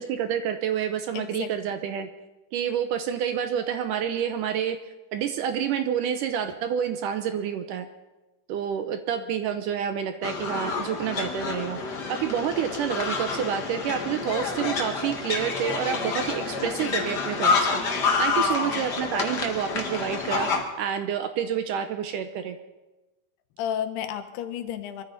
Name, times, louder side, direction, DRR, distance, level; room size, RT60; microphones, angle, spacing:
voice 1, 0.0-2.1 2.5-4.8 5.1-7.9 8.5-11.8 12.1-17.8 18.2-20.5 20.8-22.6, right 8 dB, 80° right, 8 dB, 1.9 m, -28 dB
voice 2, 1.1-1.5 16.6-17.0 18.6-18.8 23.6-25.0, left 9 dB, 85° left, 8 dB, 3.1 m, -33 dB
sound 1, 10.2-20.6, left 4 dB, 55° left, 1.1 m, -28 dB
24.0 x 14.0 x 4.1 m, 1.1 s
omnidirectional pair, 4.6 m